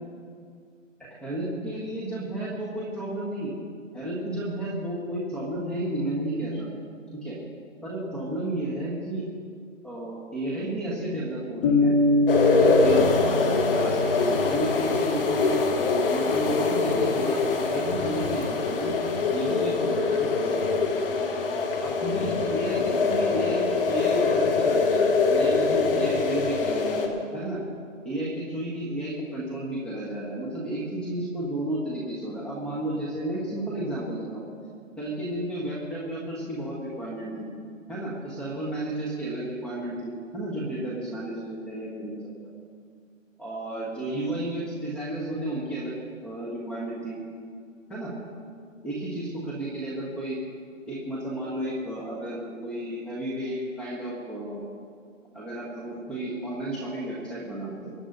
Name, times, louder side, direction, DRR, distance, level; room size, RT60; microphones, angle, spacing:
voice 1, 1.2-3.6 3.9-6.7 7.2-7.4 7.8-9.2 9.8-11.9 12.5-15.6 16.1-18.9 19.3-20.3 20.8-20.9 21.8-27.6 28.0-34.4 35.0-37.5 37.9-42.2 43.4-46.0 46.2-47.2 47.9-48.1 48.8-50.4 50.8-54.7 55.3-57.9, right 1 dB, ahead, -7 dB, 1.5 m, -32 dB
sound 1, 11.6-15.4, left 2 dB, 25° left, 1.5 m, -25 dB
sound 2, 12.3-27.1, left 4 dB, 45° left, 1.8 m, -24 dB
24.0 x 9.7 x 4.1 m, 2.2 s
hypercardioid pair, 155°, 39 cm